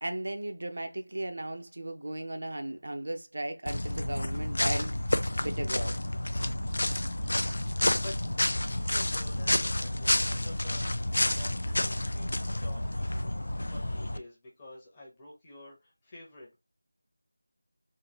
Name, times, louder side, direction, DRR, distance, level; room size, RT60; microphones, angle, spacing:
voice 1, 0.0-6.0, right 1 dB, 55° right, 0.6 m, -36 dB
sound 1, 3.7-14.2, left 1 dB, 55° left, 0.5 m, -30 dB
voice 2, 8.5-13.4 13.7-16.6, left 1 dB, 10° left, 0.9 m, -49 dB
3.8 x 2.6 x 2.8 m
figure-of-eight pair, 175°, 0 cm